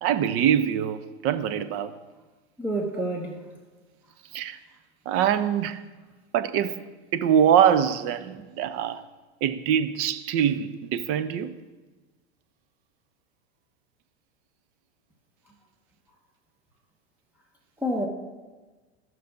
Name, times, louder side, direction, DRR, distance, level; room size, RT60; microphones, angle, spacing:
voice 1, 0.0-1.9 4.3-4.6 5.1-5.8 6.3-6.8 7.1-9.0 9.4-11.5, right 9 dB, 45° right, 0.6 m, -23 dB
voice 2, 2.6-3.4 17.8-18.1, right 1 dB, 5° right, 1.2 m, -28 dB
16.0 x 5.9 x 2.6 m
hypercardioid pair, 100°, 33 cm